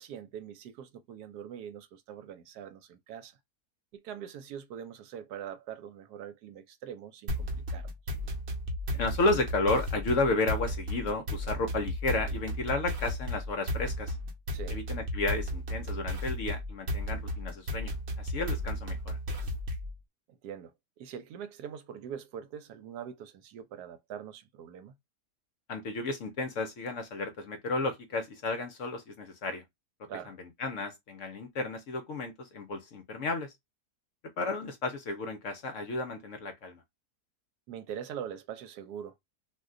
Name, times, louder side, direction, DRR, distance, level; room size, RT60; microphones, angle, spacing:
voice 1, 0.0-3.4 3.9-7.9 14.5-14.8 20.3-24.9 30.1-30.3 37.7-39.1, right 8 dB, 80° right, 1.1 m, -43 dB
sound 1, 7.3-20.0, equal, 55° right, 0.9 m, -34 dB
voice 2, 8.9-14.2 14.7-19.2 25.7-29.6 30.2-33.5 34.4-36.8, left 2 dB, 65° left, 0.8 m, -32 dB
2.6 x 2.2 x 3.6 m
omnidirectional pair, 1.7 m